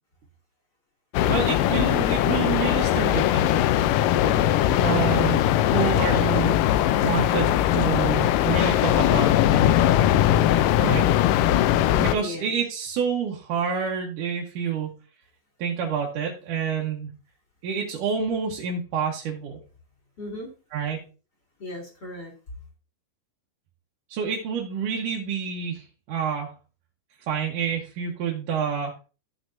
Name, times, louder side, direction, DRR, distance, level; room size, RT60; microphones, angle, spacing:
sound 1, 1.1-12.2, left 12 dB, 80° left, 2.1 m, -20 dB
voice 1, 1.3-3.5 4.8-5.4 5.7-6.5 7.0-9.9 10.8-11.1 12.0-15.0 15.6-17.1 17.6-19.6 20.7-21.1 24.1-26.5 27.3-28.9, right 7 dB, 70° right, -2 dB, 2.7 m, -28 dB
voice 2, 4.2-4.5 12.0-12.7 16.6-16.7 20.2-20.5 21.6-22.3, left 2 dB, 30° left, -2 dB, 2.9 m, -37 dB
14.5 x 6.1 x 2.6 m, 0.33 s
omnidirectional pair, 3.9 m